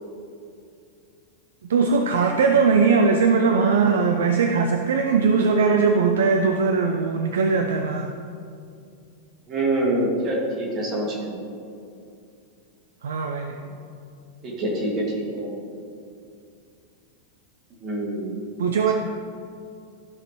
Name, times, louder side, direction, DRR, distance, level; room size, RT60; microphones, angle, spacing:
voice 1, 1.7-8.1 13.0-13.5 18.6-18.9, right 5 dB, 65° right, 4 dB, 0.4 m, -20 dB
voice 2, 9.5-11.4 13.6-13.7 14.4-15.5 17.7-18.4, right 1 dB, 35° right, -3 dB, 2.0 m, -26 dB
12.5 x 5.1 x 3.1 m, 2.5 s
figure-of-eight pair, 90°, 0 cm